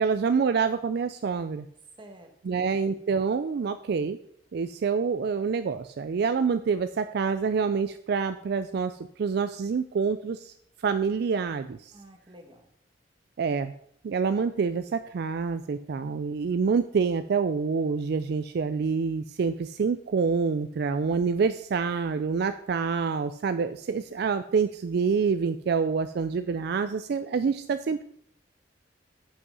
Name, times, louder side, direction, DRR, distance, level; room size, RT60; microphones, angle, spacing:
voice 1, 0.0-1.6 2.4-4.2 4.5-8.9 9.2-10.4 10.8-11.8 13.4-13.7 14.0-28.0, right 5 dB, 60° right, 11 dB, 0.4 m, -27 dB
voice 2, 2.0-2.7 11.9-12.7, right 1 dB, 30° right, 4 dB, 1.3 m, -50 dB
7.8 x 5.6 x 5.3 m, 0.66 s
head